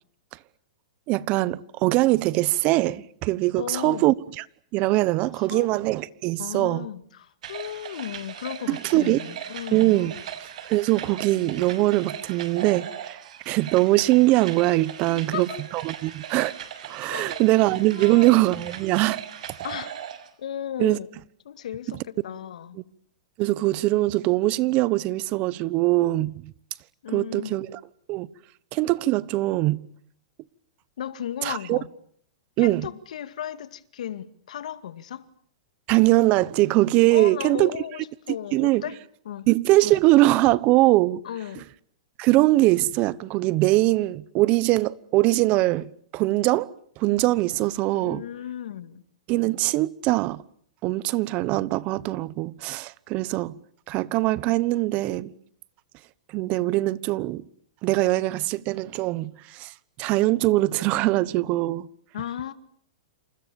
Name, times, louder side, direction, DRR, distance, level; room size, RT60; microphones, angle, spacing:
voice 1, 1.1-4.4 4.7-6.9 8.7-9.2 9.7-10.1 10.6-15.5 15.7-16.5 16.9-19.2 20.8-21.0 23.4-26.5 27.1-27.8 28.1-28.3 28.7-29.9 31.4-31.8 32.6-32.9 35.9-37.7 38.5-38.8 39.5-41.2 42.2-46.7 47.0-48.2 49.3-50.4 50.8-53.5 53.9-55.3 56.3-57.4 57.8-59.7 60.0-61.9, right 18 dB, 40° right, 1.1 m, -22 dB
voice 2, 3.5-4.1 5.4-5.7 6.4-10.1 15.1-15.6 17.1-17.4 17.9-18.3 19.6-19.9 20.4-21.1 21.4-22.8 27.0-27.6 31.0-31.9 32.6-35.3 37.1-39.0 39.2-39.5 41.2-41.6 47.9-49.0 62.1-62.5, left 10 dB, 75° left, 2.2 m, -35 dB
sound 1, 7.4-20.3, right 9 dB, 70° right, 6.6 m, -39 dB
28.5 x 27.5 x 7.1 m
hypercardioid pair, 140°, 4 cm